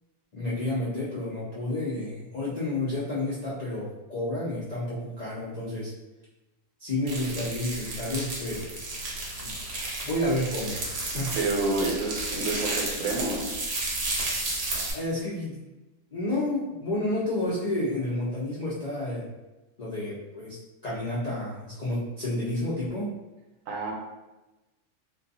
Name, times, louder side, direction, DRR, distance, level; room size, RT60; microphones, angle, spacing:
voice 1, 0.3-5.9 6.8-8.7 9.4-9.5 10.0-10.8 11.1-11.3 14.7-15.6 16.1-19.3 19.8-20.6 20.8-23.1, left 1 dB, 80° left, -9 dB, 0.3 m, -30 dB
sound 1, 7.1-14.9, right 2 dB, 60° right, 0.9 m, -32 dB
voice 2, 11.3-13.5 23.7-23.9, right 3 dB, 80° right, -2 dB, 1.0 m, -28 dB
2.4 x 2.2 x 2.6 m, 1.1 s
omnidirectional pair, 1.4 m